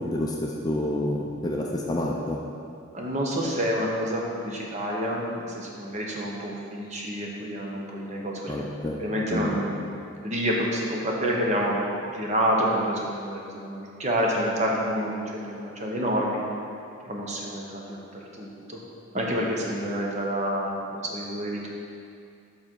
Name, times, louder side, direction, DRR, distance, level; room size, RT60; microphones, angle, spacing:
voice 1, 0.0-2.4 8.5-9.0 9.3-9.6, left 1 dB, 20° left, -1 dB, 0.4 m, -28 dB
voice 2, 2.9-9.9 10.2-11.8 12.1-16.4 17.0-18.8 19.1-21.7, equal, 35° right, -2 dB, 0.9 m, -28 dB
7.2 x 5.0 x 4.5 m, 2.4 s
head